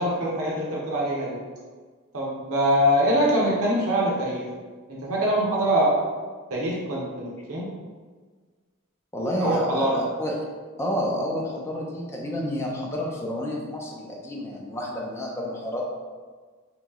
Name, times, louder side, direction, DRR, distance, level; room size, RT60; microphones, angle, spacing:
voice 1, 0.0-1.4 2.1-4.5 4.9-6.0 6.5-7.7 9.4-10.1, equal, 80° right, -5 dB, 0.8 m, -23 dB
voice 2, 9.1-10.4 10.8-15.9, equal, 10° left, -2 dB, 0.5 m, -29 dB
3.1 x 2.9 x 3.6 m, 1.5 s
head